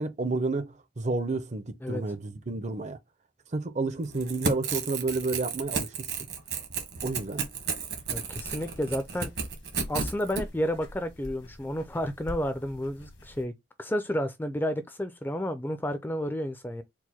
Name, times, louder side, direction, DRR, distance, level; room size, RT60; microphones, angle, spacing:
voice 1, 0.0-3.0 3.5-6.1 7.0-7.4, right 3 dB, 40° right, 0.5 m, -30 dB
Crackle / Tearing, 4.1-10.4, right 5 dB, 60° right, 1.1 m, -32 dB
voice 2, 8.1-9.3 9.9-13.5 13.8-16.8, equal, 10° left, 0.4 m, -31 dB
sound 1, 8.3-13.4, left 1 dB, 80° left, 1.2 m, -47 dB
4.6 x 2.1 x 4.1 m
head